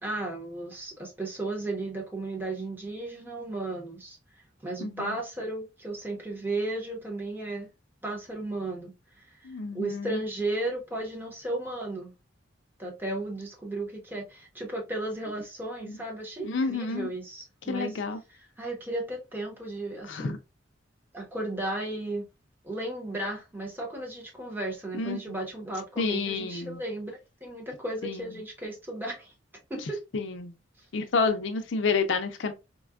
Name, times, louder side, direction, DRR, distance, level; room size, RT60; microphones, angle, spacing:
voice 1, 0.0-7.7 8.0-12.1 12.8-18.0 18.6-20.3 21.1-22.3 22.6-29.3 29.7-30.0, right 2 dB, 10° right, 1.0 m, -35 dB
voice 2, 4.8-5.2 9.4-10.2 15.9-16.0 16.4-17.1 17.7-18.2 20.1-20.4 24.9-25.2 26.0-26.8 28.0-28.4 30.1-30.5 30.9-32.5, left 4 dB, 65° left, 0.5 m, -29 dB
4.1 x 2.3 x 2.3 m
head